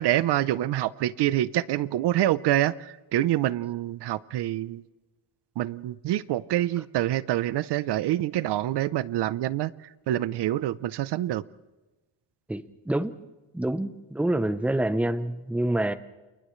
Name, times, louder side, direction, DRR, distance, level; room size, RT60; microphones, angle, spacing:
voice 1, 0.0-4.8 5.6-9.7 10.1-11.4, right 13 dB, 60° right, 18 dB, 0.7 m, -26 dB
voice 2, 12.5-13.1 13.5-15.9, right 1 dB, 5° right, 12 dB, 0.6 m, -27 dB
29.5 x 28.5 x 3.2 m, 1.1 s
cardioid pair, 165°, 47 cm